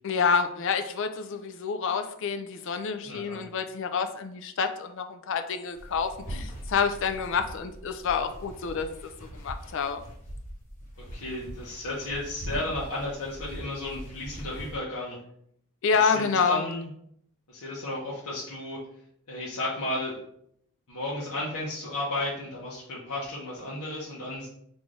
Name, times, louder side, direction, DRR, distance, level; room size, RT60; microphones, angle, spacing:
voice 1, 0.0-8.9 9.4-10.0 15.8-16.6, left 5 dB, 55° left, 8 dB, 0.4 m, -28 dB
voice 2, 3.0-3.5 11.0-15.2 15.9-16.9 17.5-18.8 19.3-20.2 20.9-24.5, left 2 dB, 75° left, -6 dB, 0.8 m, -33 dB
sound 1, 5.7-14.8, equal, 30° left, 1.2 m, -41 dB
3.7 x 2.5 x 3.2 m, 0.69 s
head